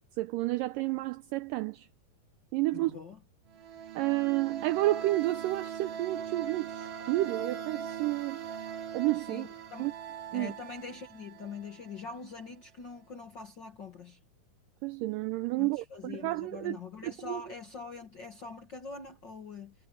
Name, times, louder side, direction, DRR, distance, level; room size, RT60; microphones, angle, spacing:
voice 1, 0.2-1.9 2.5-3.0 4.0-8.4 8.9-9.5 9.8-9.9 10.3-10.5 14.8-16.8 17.0-17.4, right 18 dB, 90° right, 1.9 m, -30 dB
voice 2, 2.7-3.2 9.2-9.9 10.3-14.2 15.6-19.7, left 4 dB, 50° left, 1.3 m, -43 dB
sound 1, 3.5-12.1, right 7 dB, 65° right, 3.4 m, -41 dB
omnidirectional pair, 4.4 m